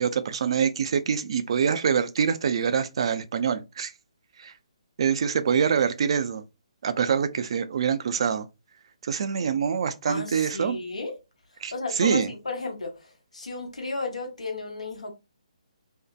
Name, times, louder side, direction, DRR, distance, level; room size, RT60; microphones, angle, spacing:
voice 1, 0.0-3.9 4.4-4.5 5.0-6.4 6.8-8.5 9.0-10.8 11.6-12.3, right 7 dB, 50° right, 0.3 m, -25 dB
voice 2, 10.1-11.1 11.6-15.1, left 3 dB, 75° left, 0.9 m, -33 dB
2.6 x 2.1 x 2.3 m
figure-of-eight pair, 140°, 4 cm